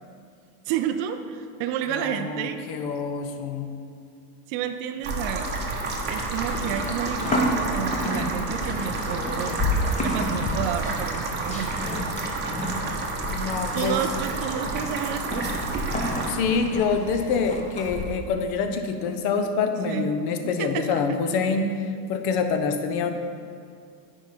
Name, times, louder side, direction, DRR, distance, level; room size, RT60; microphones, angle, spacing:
voice 1, 0.7-2.9 4.5-5.5 6.0-9.6 10.0-11.9 13.7-15.5 19.9-20.1 20.4-21.0, right 9 dB, 45° right, 7 dB, 0.4 m, -30 dB
voice 2, 2.0-3.7 13.3-14.0 16.3-21.7 22.1-23.1, left 5 dB, 50° left, 7 dB, 0.8 m, -26 dB
sound 1, 5.0-16.3, right 2 dB, 20° right, 0.9 m, -30 dB
Livestock farm animals working animals, 5.6-18.0, left 1 dB, 15° left, 0.9 m, -31 dB
9.0 x 4.9 x 4.3 m, 2.3 s
supercardioid pair, 135°, 48 cm